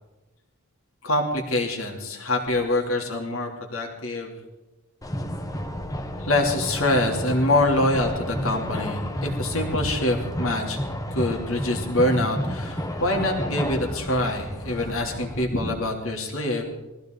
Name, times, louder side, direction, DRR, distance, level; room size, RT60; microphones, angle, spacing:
voice 1, 1.0-4.3 6.2-10.8 11.1-16.8, left 1 dB, 70° left, 1 dB, 3.1 m, -25 dB
sound 1, 5.0-15.4, equal, 15° left, 1.1 m, -31 dB
23.0 x 15.5 x 4.0 m, 1.0 s
head